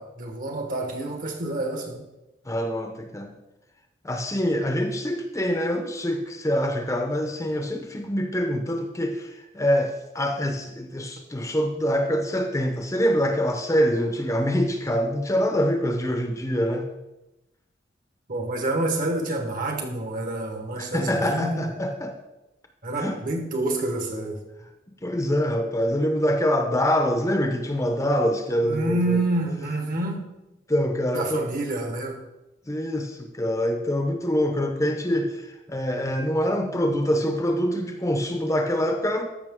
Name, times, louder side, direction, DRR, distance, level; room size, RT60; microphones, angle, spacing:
voice 1, 0.0-2.0 18.3-21.7 22.8-24.4 28.6-30.3 31.1-32.2, right 2 dB, 50° right, 1.4 m, -28 dB
voice 2, 2.4-3.3 4.0-16.8 20.8-22.1 23.0-23.2 25.0-29.2 30.7-31.4 32.7-39.2, equal, 15° left, 0.8 m, -25 dB
13.5 x 5.7 x 3.7 m
head